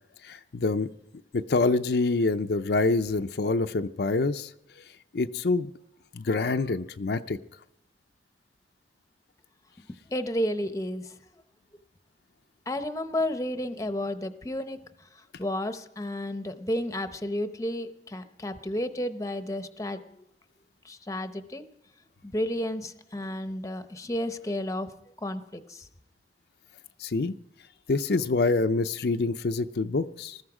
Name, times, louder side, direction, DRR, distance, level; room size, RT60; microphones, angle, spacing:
voice 1, 0.2-0.9 1.3-4.5 5.1-5.7 6.1-7.4 27.0-27.3 27.9-30.4, left 3 dB, 65° left, 8 dB, 0.5 m, -26 dB
voice 2, 10.1-11.1 12.7-14.8 15.4-20.2 20.8-21.6 22.2-24.9 25.2-25.9, left 1 dB, 20° left, 10 dB, 0.7 m, -32 dB
20.0 x 14.0 x 4.9 m, 0.83 s
head